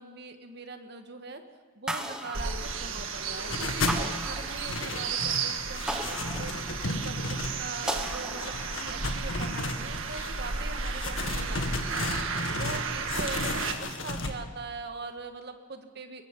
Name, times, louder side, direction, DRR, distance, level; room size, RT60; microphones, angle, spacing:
voice 1, 0.0-1.4 1.8-6.5 6.9-12.2 12.6-16.2, right 3 dB, 55° right, 6 dB, 1.7 m, -41 dB
sound 1, 1.9-3.2 3.9-5.1 5.9-7.1 7.9-9.0, right 1 dB, 5° right, 1.3 m, -37 dB
sound 2, 2.3-13.7, right 5 dB, 85° right, 1.7 m, -34 dB
sound 3, 3.4-4.1 4.4-5.5 5.7-7.9 8.4-10.3 10.8-12.8 13.1-14.3, left 2 dB, 80° left, 1.9 m, -34 dB
23.0 x 21.5 x 5.5 m, 1.4 s
head